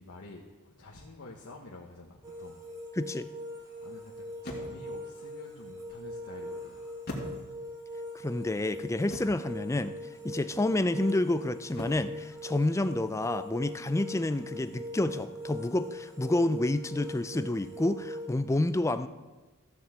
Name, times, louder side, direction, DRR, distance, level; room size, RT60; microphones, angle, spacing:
voice 1, 0.0-2.6 3.5-6.9, left 2 dB, 80° left, -3 dB, 1.3 m, -49 dB
sound 1, 2.1-2.3 4.4-5.0 7.1-7.8 9.1-9.6 11.8-12.2, left 1 dB, 50° left, 2.2 m, -41 dB
sound 2, 2.2-18.3, equal, 20° right, 2.5 m, -41 dB
voice 2, 3.0-3.3 8.2-10.0 10.2-19.1, left 2 dB, 15° left, 11 dB, 0.4 m, -29 dB
14.0 x 6.1 x 7.5 m, 1.2 s
head